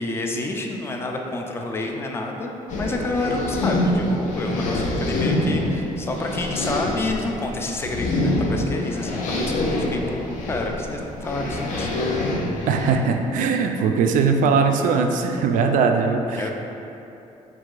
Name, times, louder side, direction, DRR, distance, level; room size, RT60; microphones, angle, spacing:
voice 1, 0.0-11.9 16.3-16.5, left 2 dB, 15° left, 2 dB, 0.3 m, -29 dB
sound 1, 2.7-12.9, left 1 dB, 65° left, 0.6 m, -25 dB
voice 2, 12.7-16.5, right 5 dB, 70° right, 5 dB, 0.4 m, -20 dB
4.7 x 3.6 x 2.4 m, 2.9 s
cardioid pair, 110°, 14 cm